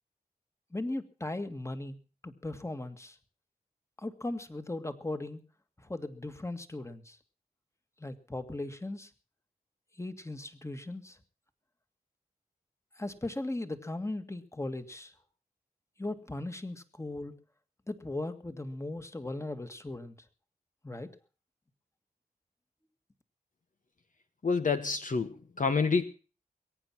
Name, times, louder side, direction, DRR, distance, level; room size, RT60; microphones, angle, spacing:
voice 1, 0.7-2.0 2.2-3.2 4.0-5.4 5.8-7.2 8.0-9.1 10.0-11.2 13.0-15.1 16.0-17.3 17.9-20.2 20.8-21.1, left 2 dB, 15° left, 9 dB, 1.9 m, -38 dB
voice 2, 24.4-26.1, left 4 dB, 55° left, 8 dB, 1.2 m, -28 dB
22.0 x 9.1 x 6.0 m, 0.38 s
cardioid pair, 50°, 16 cm